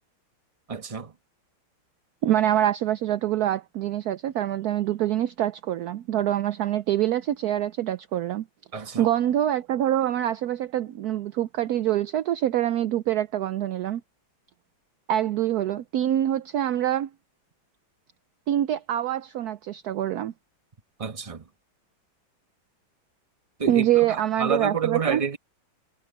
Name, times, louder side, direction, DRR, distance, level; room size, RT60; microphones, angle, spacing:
voice 1, 0.7-1.1 8.7-9.1 21.0-21.4 23.6-25.4, right 5 dB, 20° right, 1.0 m, -29 dB
voice 2, 2.2-8.5 8.7-14.0 15.1-17.1 18.5-20.3 23.7-25.2, right 12 dB, 75° right, 0.8 m, -25 dB
omnidirectional pair, 2.3 m